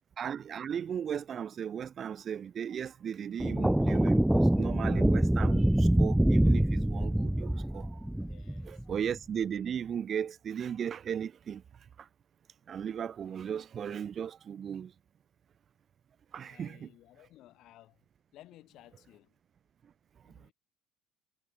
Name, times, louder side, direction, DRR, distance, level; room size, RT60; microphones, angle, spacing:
voice 1, 0.2-8.0 8.6-11.6 12.0-12.1 12.7-14.9 16.3-16.9, right 8 dB, 45° right, 1.4 m, -36 dB
sound 1, 3.4-9.0, right 1 dB, 5° right, 0.5 m, -25 dB
voice 2, 8.2-8.9 16.4-18.0 18.3-19.4 20.2-20.5, left 15 dB, 60° left, 7.3 m, -57 dB
hypercardioid pair, 70°, 0 cm